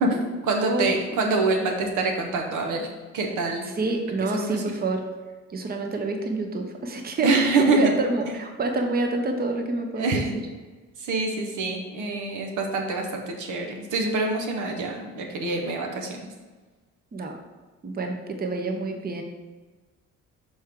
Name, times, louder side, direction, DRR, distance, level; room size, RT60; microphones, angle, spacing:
voice 1, 0.0-2.9 3.1-3.6 4.3-4.7 7.2-7.9 9.9-10.4 11.0-16.3, right 3 dB, 80° right, 3 dB, 1.1 m, -25 dB
voice 2, 3.6-5.0 5.5-10.2 17.1-17.3 17.8-19.2, right 2 dB, 30° right, 3 dB, 0.8 m, -27 dB
6.3 x 4.4 x 3.7 m, 1.3 s
cardioid pair, 90°, 30 cm